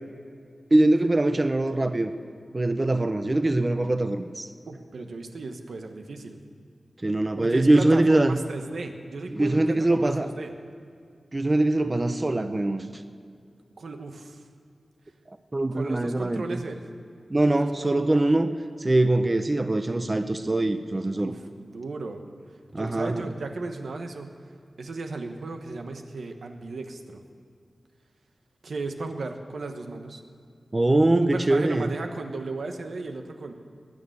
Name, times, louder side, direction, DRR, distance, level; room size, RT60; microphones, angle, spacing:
voice 1, 0.7-2.1 2.5-4.5 7.0-8.4 9.3-10.3 11.3-12.9 15.5-16.6 17.3-21.3 22.7-23.3 30.7-31.9, right 2 dB, 25° right, 9 dB, 0.6 m, -23 dB
voice 2, 4.7-6.4 7.4-10.5 13.8-14.5 15.7-16.8 17.5-17.7 21.1-22.2 22.5-24.3 24.8-27.2 28.6-30.2 31.1-33.6, right 3 dB, 85° right, 5 dB, 1.2 m, -35 dB
20.0 x 6.8 x 9.5 m, 2.3 s
wide cardioid pair, 105°, 0 cm